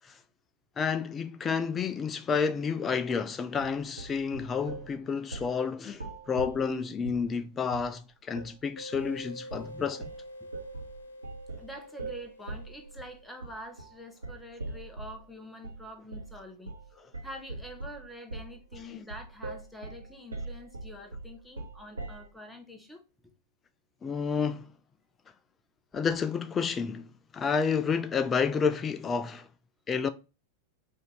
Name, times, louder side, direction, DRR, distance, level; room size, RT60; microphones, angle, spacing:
voice 1, 0.8-10.0 18.8-19.1 24.0-24.7 25.9-29.5 29.9-30.1, left 6 dB, 20° left, 0.3 m, -30 dB
sound 1, 3.6-4.9 5.3-5.6 5.9-7.3 7.7-8.0 8.3-8.5 8.9-9.2 9.5-9.8 10.0-15.2 15.6-15.8 16.1-16.4 16.7-16.9 17.1-22.3, right 2 dB, 80° right, 1.0 m, -41 dB
sound 2, 8.8-14.1, equal, 75° left, 0.6 m, -47 dB
voice 2, 11.6-16.8 17.2-23.0, equal, 5° left, 1.0 m, -46 dB
4.8 x 2.6 x 3.9 m
figure-of-eight pair, 90°, 0 cm